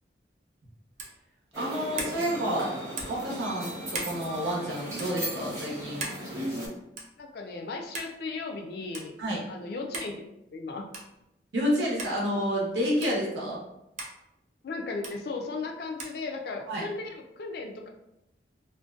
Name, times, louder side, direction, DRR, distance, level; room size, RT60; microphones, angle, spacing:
sound 1, 1.0-1.2 2.0-2.2 3.0-3.2 3.9-4.2 4.9-5.1 6.0-6.2 7.0-7.2 7.9-8.1 8.9-9.1 9.9-10.1 10.9-11.1 12.0-12.2 13.0-13.2 14.0-14.2 15.0-15.2 16.0-16.2, right 3 dB, 45° right, 0.4 m, -37 dB
sound 2, 1.5-6.7, equal, 15° right, 0.8 m, -36 dB
voice 1, 1.6-2.8 3.1-6.0 9.2-9.4 11.5-13.6 16.7-16.8, equal, 85° right, -4 dB, 0.8 m, -29 dB
voice 2, 7.2-9.1 9.5-10.8 14.6-17.9, left 3 dB, 55° left, 3 dB, 0.3 m, -36 dB
2.5 x 2.1 x 2.3 m, 0.85 s
head